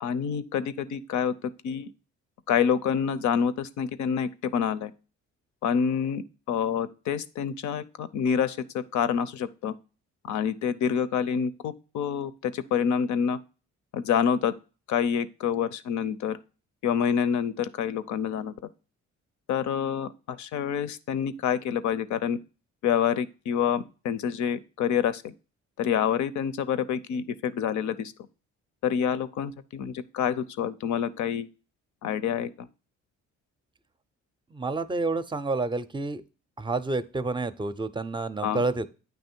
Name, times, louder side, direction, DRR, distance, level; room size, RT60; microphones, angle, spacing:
voice 1, 0.0-1.9 2.5-4.9 5.6-6.2 6.5-9.7 10.3-13.4 13.9-14.5 14.9-16.4 16.8-18.5 19.5-22.4 22.8-25.3 25.8-28.1 28.8-31.5 32.0-32.7 38.4-38.6, left 8 dB, 70° left, 14 dB, 0.6 m, -27 dB
voice 2, 34.5-36.2 36.6-38.9, right 3 dB, 15° right, 13 dB, 0.5 m, -29 dB
9.0 x 3.1 x 4.4 m, 0.34 s
cardioid pair, 90°, 30 cm